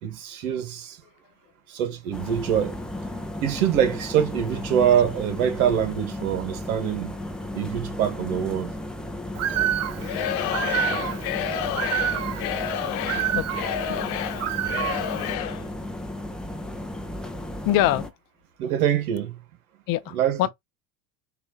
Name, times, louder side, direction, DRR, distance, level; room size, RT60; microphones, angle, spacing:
voice 1, 0.0-1.0 1.7-2.8 3.4-7.2 7.5-8.7 18.6-19.4 20.1-20.5, right 9 dB, 85° right, 1.9 m, -24 dB
sound 1, 2.1-18.1, left 1 dB, ahead, 0.7 m, -34 dB
Bird, 9.3-15.3, right 11 dB, 35° right, 0.6 m, -29 dB
Singing / Crowd, 10.0-15.7, left 9 dB, 80° left, 1.0 m, -30 dB
voice 2, 13.3-14.1 15.4-15.6 17.6-18.1 19.9-20.5, left 14 dB, 55° left, 0.7 m, -25 dB
4.9 x 2.9 x 2.6 m
supercardioid pair, 95°, 43 cm